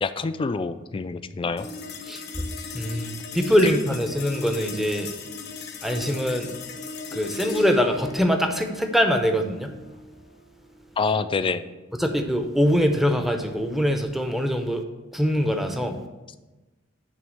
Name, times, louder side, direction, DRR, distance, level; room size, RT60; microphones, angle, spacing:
voice 1, 0.0-1.7 3.6-3.8 11.0-11.6, left 4 dB, 25° left, 12 dB, 0.3 m, -26 dB
sound 1, 1.6-12.2, left 4 dB, 55° left, 0.8 m, -38 dB
voice 2, 2.7-5.1 5.8-6.5 7.1-9.7 12.0-14.8 15.1-16.0, equal, ahead, 5 dB, 0.6 m, -23 dB
9.2 x 3.4 x 6.3 m, 1.1 s
head